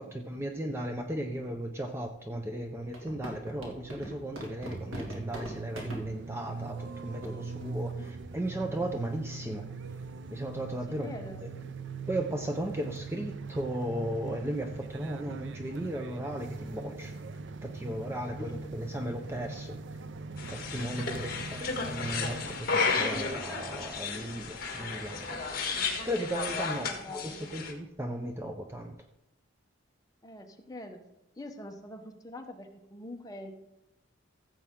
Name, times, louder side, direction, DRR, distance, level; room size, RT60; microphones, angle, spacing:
voice 1, 0.0-9.6 10.3-11.5 12.1-17.2 17.6-19.8 20.5-25.4 25.8-29.0, right 1 dB, 10° right, 4 dB, 0.5 m, -36 dB
sound 1, 2.9-6.0 6.8-6.9 7.2-7.3 7.6-7.8 8.2-8.5, equal, 90° right, 2.2 m, -40 dB
sound 2, 3.3-22.6, right 4 dB, 60° right, 0.5 m, -41 dB
voice 2, 11.0-11.4 18.4-18.6 26.8-27.5 30.2-31.0 31.4-33.7, left 1 dB, 15° left, 4 dB, 0.9 m, -45 dB
sound 3, 20.4-27.7, left 4 dB, 45° left, 1.5 m, -33 dB
15.0 x 7.3 x 3.7 m, 0.86 s
head